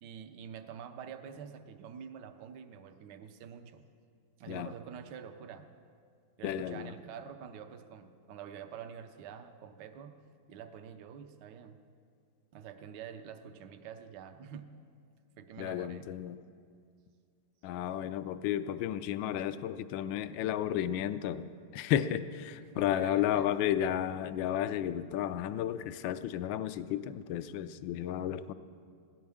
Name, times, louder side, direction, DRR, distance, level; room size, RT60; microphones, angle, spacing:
voice 1, 0.0-3.8 4.4-5.7 6.4-10.2 10.5-11.8 12.5-14.7 15.4-16.1 22.6-23.5 24.3-24.4, right 8 dB, 65° right, 8 dB, 1.3 m, -47 dB
voice 2, 6.4-6.9 15.6-16.4 17.6-21.5 21.7-28.5, left 11 dB, 75° left, 12 dB, 1.3 m, -33 dB
22.0 x 16.5 x 3.6 m, 2.2 s
omnidirectional pair, 2.2 m